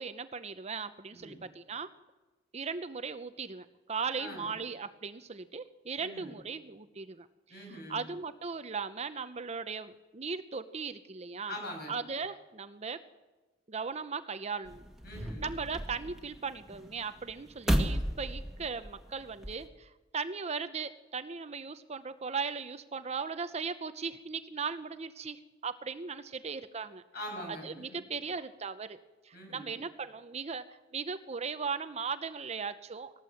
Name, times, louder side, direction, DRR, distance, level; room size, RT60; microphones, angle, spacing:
voice 1, 0.0-1.9 2.5-11.5 11.9-13.0 13.7-14.8 15.4-27.0 27.6-29.0 29.3-30.6 30.9-33.2, right 5 dB, 35° right, 11 dB, 0.7 m, -38 dB
voice 2, 1.1-1.4 4.2-4.5 6.0-6.4 7.5-8.0 11.5-12.0 15.0-15.5 27.1-28.0 29.3-29.8, equal, 55° left, 2 dB, 7.1 m, -43 dB
sound 1, 14.7-19.7, equal, ahead, 1.9 m, -35 dB
20.5 x 17.5 x 7.8 m, 1.2 s
head